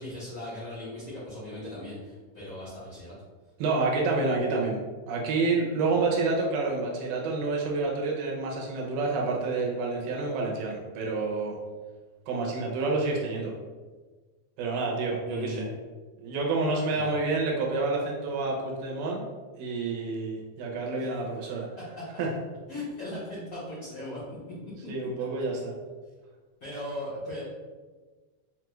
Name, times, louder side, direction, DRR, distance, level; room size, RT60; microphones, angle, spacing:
voice 1, 0.0-3.1 15.3-15.7 16.9-17.1 21.0-21.1 21.8-22.2 22.7-24.5 26.6-27.4, left 1 dB, 75° left, -11 dB, 0.8 m, -38 dB
voice 2, 3.6-4.8 5.1-11.6 12.3-13.5 14.6-15.7 16.2-19.3 19.6-21.7 22.2-22.3 24.9-25.7, right 3 dB, 85° right, -2 dB, 2.3 m, -28 dB
5.5 x 2.3 x 3.0 m, 1.3 s
omnidirectional pair, 3.5 m